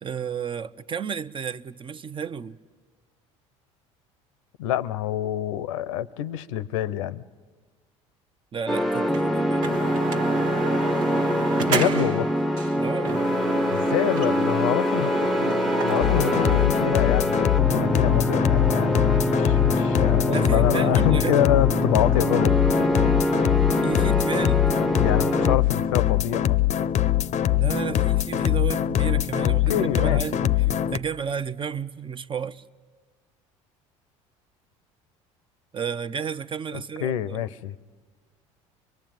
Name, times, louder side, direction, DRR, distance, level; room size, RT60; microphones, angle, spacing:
voice 1, 0.0-2.6 8.5-9.7 12.7-13.3 20.3-21.5 23.8-24.7 27.6-32.6 35.7-37.5, right 7 dB, 30° right, 0.8 m, -32 dB
voice 2, 4.6-7.2 11.7-12.4 13.7-22.5 24.9-26.9 29.4-30.4 36.7-37.8, left 11 dB, 80° left, 0.7 m, -27 dB
sound 1, 8.7-25.6, equal, ahead, 0.8 m, -24 dB
sound 2, 9.1-9.2 9.6-12.2 12.6-12.7 13.1-16.7, right 5 dB, 85° right, 1.4 m, -30 dB
sound 3, 16.0-31.0, left 12 dB, 45° left, 0.7 m, -23 dB
23.5 x 22.5 x 9.3 m
hypercardioid pair, 75°, 16 cm